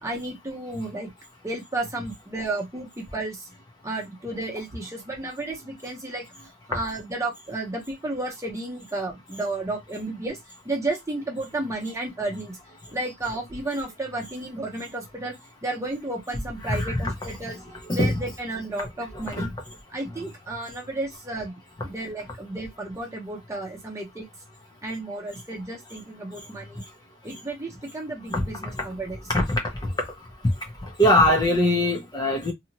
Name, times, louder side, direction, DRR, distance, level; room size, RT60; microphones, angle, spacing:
voice 1, 0.0-1.1 1.4-3.5 3.8-10.4 10.6-12.6 12.9-15.3 15.6-17.6 17.9-19.5 19.9-24.3 24.8-26.8 27.2-29.2, right 2 dB, 15° right, 0.9 m, -32 dB
voice 2, 16.6-17.1 17.9-18.2 19.3-19.5 28.3-28.7 29.3-29.9 30.8-32.5, left 1 dB, 20° left, 0.7 m, -22 dB
2.8 x 2.4 x 2.8 m
head